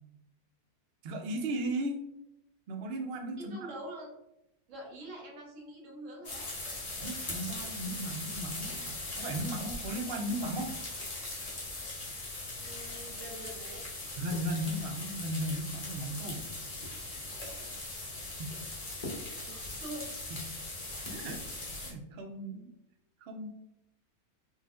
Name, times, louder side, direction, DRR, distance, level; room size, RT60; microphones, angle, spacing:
voice 1, 1.0-2.0 2.7-3.6 7.0-10.7 14.2-16.5 18.4-18.5 20.3-20.4 21.1-21.4 21.8-22.7 23.2-23.5, right 1 dB, 80° right, 3 dB, 0.5 m, -36 dB
voice 2, 3.4-4.1 4.7-6.5 12.6-13.8 19.4-20.4, right 1 dB, 60° right, -1 dB, 1.2 m, -45 dB
sound 1, 6.2-21.9, left 2 dB, 35° left, 0.6 m, -40 dB
3.9 x 2.4 x 2.4 m, 0.84 s
omnidirectional pair, 1.6 m